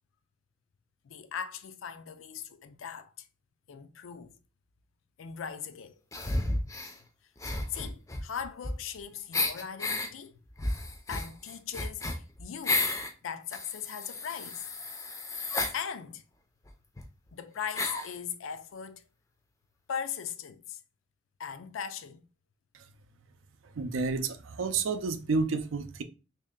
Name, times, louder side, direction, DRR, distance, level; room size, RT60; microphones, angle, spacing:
voice 1, 1.0-3.3 3.7-4.4 5.2-6.0 7.7-10.4 11.1-14.7 15.7-16.2 17.3-19.0 19.9-20.8 21.4-22.3, left 7 dB, 85° left, 0.4 m, -39 dB
sound 1, 6.1-7.0 7.4-9.0 9.3-10.1 10.6-13.1 13.5-15.8 16.7-16.8 17.0-17.1 17.8-18.1, left 2 dB, 15° left, 0.4 m, -32 dB
voice 2, 23.8-26.0, right 4 dB, 80° right, 0.5 m, -30 dB
3.1 x 2.7 x 3.6 m
head